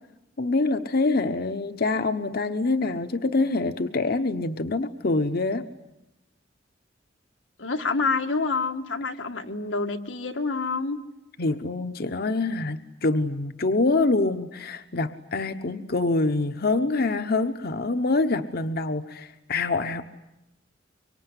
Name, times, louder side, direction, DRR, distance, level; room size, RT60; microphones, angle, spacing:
voice 1, 0.4-5.7 11.4-20.0, left 3 dB, 55° left, 8 dB, 1.0 m, -25 dB
voice 2, 7.6-11.0, left 4 dB, 90° left, 5 dB, 1.9 m, -27 dB
25.0 x 24.0 x 9.9 m, 0.94 s
head